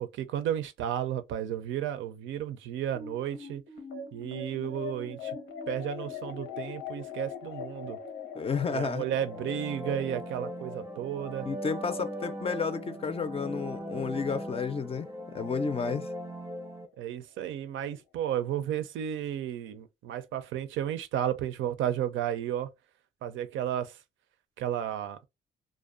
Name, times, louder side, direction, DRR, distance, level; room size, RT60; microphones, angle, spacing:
voice 1, 0.0-3.6 4.1-5.4 5.7-8.0 8.7-11.5 17.0-22.7 23.2-24.0 24.6-25.2, right 10 dB, 75° right, 0.4 m, -33 dB
sound 1, 2.9-15.5, left 6 dB, 85° left, 0.7 m, -43 dB
voice 2, 8.3-9.0 11.4-15.1 15.3-16.1, left 5 dB, 30° left, 0.4 m, -31 dB
sound 2, 8.9-16.9, equal, 10° right, 0.6 m, -39 dB
2.5 x 2.1 x 2.4 m
cardioid pair, 90°, 20 cm